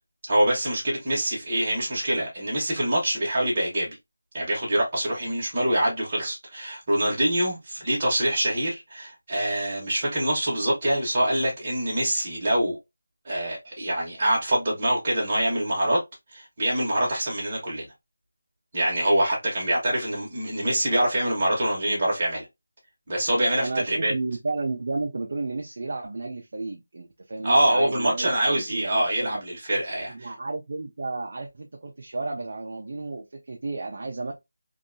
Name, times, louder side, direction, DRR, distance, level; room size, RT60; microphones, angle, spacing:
voice 1, 0.3-4.0 4.3-12.8 13.2-16.0 16.3-17.9 18.7-22.4 23.1-24.1 27.4-30.3, right 1 dB, 20° right, 0.9 m, -25 dB
voice 2, 23.6-29.4 30.1-34.4, right 3 dB, 35° right, 0.3 m, -32 dB
2.7 x 2.2 x 2.5 m
figure-of-eight pair, 180°, 0 cm